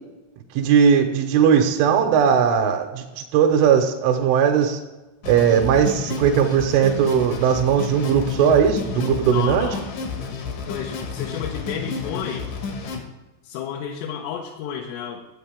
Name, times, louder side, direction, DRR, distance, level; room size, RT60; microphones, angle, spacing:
voice 1, 0.5-4.8 5.3-9.7, right 7 dB, 85° right, 3 dB, 3.2 m, -18 dB
sound 1, 5.2-13.0, left 5 dB, 65° left, 2.0 m, -31 dB
voice 2, 9.2-9.9 10.7-12.5 13.4-15.3, left 8 dB, 85° left, 1 dB, 3.3 m, -31 dB
12.5 x 7.9 x 3.4 m, 1.1 s
omnidirectional pair, 5.7 m